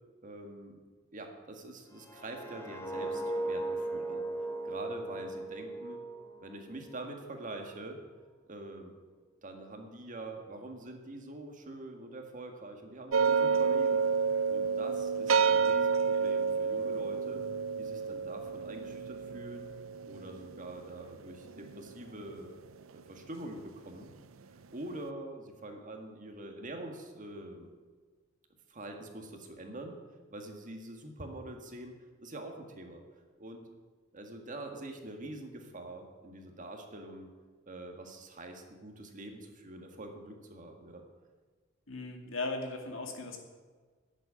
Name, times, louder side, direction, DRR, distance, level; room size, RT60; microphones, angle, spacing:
voice 1, 0.2-0.8 1.1-4.2 4.6-6.0 6.4-8.0 8.5-8.9 9.4-14.1 14.5-17.4 17.8-19.7 20.1-22.6 22.9-24.1 24.7-27.7 28.7-30.0 30.3-31.9 32.2-33.0 33.4-33.6 34.1-37.3 37.7-41.0, right 2 dB, 40° right, 4 dB, 1.8 m, -45 dB
sound 1, 1.9-7.0 7.3-7.6, right 2 dB, 15° left, 1.7 m, -37 dB
sound 2, 13.1-22.3, right 5 dB, 85° right, 0.6 m, -30 dB
voice 2, 41.9-43.4, left 2 dB, 75° left, 3 dB, 2.3 m, -37 dB
11.0 x 7.9 x 9.8 m, 1.5 s
head